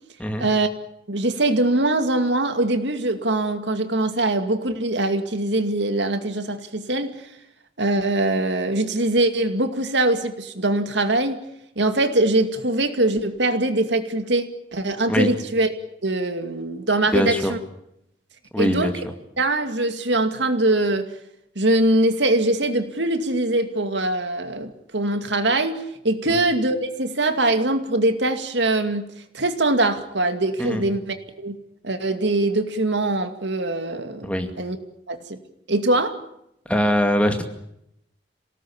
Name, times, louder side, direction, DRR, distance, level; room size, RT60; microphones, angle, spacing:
voice 1, 0.4-0.7 1.1-7.1 7.8-11.4 11.8-15.7 16.0-17.6 18.6-18.9 19.4-21.1 21.6-29.1 29.3-31.6 31.8-34.3 34.6-34.8 35.1-35.4 35.7-36.2, right 2 dB, 75° right, 8 dB, 2.4 m, -22 dB
voice 2, 17.1-17.5 18.5-19.1 26.3-26.4 30.6-30.8 34.2-34.5 36.7-37.4, equal, 5° left, 5 dB, 2.3 m, -22 dB
26.5 x 18.5 x 8.7 m, 0.79 s
head